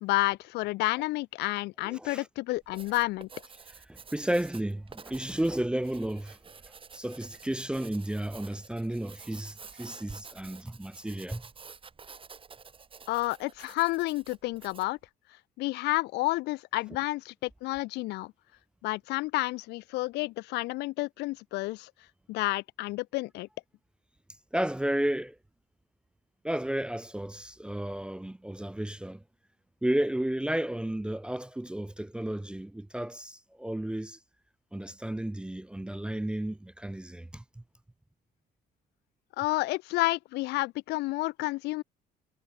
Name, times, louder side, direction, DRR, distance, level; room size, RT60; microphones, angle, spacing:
voice 1, 0.0-3.3 13.1-15.0 15.6-18.3 18.8-21.9 22.3-23.5 39.4-41.8, left 20 dB, 80° left, 0.4 m, -30 dB
voice 2, 1.8-2.3 3.9-6.4 6.9-11.5 24.5-25.4 26.4-29.2 29.8-34.2 34.7-37.6, right 1 dB, 5° right, 0.3 m, -33 dB
Writing, 2.6-15.0, right 5 dB, 30° right, 5.5 m, -50 dB
cardioid pair, 110°, 17 cm